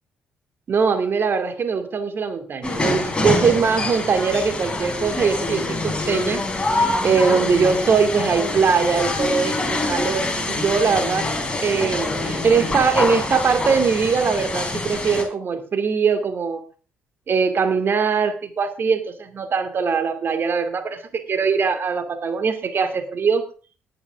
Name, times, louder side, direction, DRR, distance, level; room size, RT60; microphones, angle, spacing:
voice 1, 0.7-11.3 11.6-16.6 17.3-23.4, right 5 dB, 45° right, 8 dB, 2.4 m, -21 dB
sound 1, 2.6-15.2, left 2 dB, 20° left, 3.8 m, -25 dB
19.5 x 8.6 x 3.6 m, 0.37 s
hypercardioid pair, 45°, 5 cm